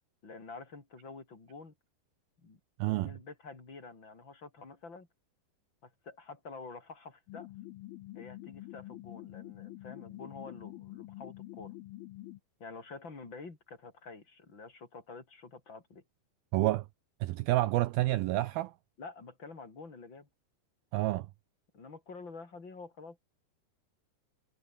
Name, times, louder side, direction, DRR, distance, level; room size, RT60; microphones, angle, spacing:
voice 1, 0.2-1.7 2.4-2.6 2.9-5.1 5.8-7.5 8.1-11.8 12.6-16.0 19.0-20.3 21.7-23.2, left 4 dB, 25° left, 4.5 m, -48 dB
voice 2, 2.8-3.1 16.5-16.9 17.2-18.7 20.9-21.3, right 17 dB, 90° right, 2.1 m, -29 dB
sound 1, 7.3-12.4, left 17 dB, 75° left, 2.2 m, -47 dB
omnidirectional pair, 5.2 m